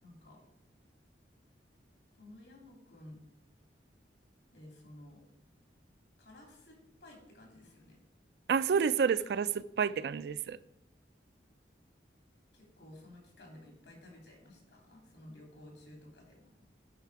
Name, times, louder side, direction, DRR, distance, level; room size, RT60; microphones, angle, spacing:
voice 1, 0.0-0.4 2.1-3.2 4.5-5.2 6.2-8.0 12.5-16.5, left 1 dB, 85° left, 2.9 m, -54 dB
voice 2, 8.5-10.6, right 6 dB, 65° right, 0.3 m, -29 dB
10.0 x 4.9 x 4.7 m
head